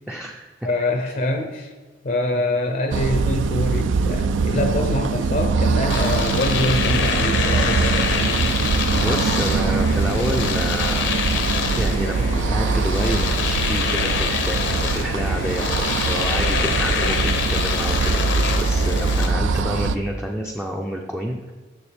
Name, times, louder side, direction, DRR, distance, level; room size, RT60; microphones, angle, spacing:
voice 1, 0.1-0.5 1.1-1.2 8.6-11.2 11.7-21.5, equal, 5° right, 0 dB, 0.4 m, -29 dB
voice 2, 0.6-1.7 2.0-8.1, left 1 dB, 45° left, 5 dB, 0.5 m, -25 dB
sound 1, 2.9-20.0, right 4 dB, 75° right, 0.4 m, -22 dB
Domestic sounds home sounds, 5.9-19.3, left 5 dB, 75° left, 0.7 m, -25 dB
7.0 x 6.8 x 3.4 m, 1.3 s
head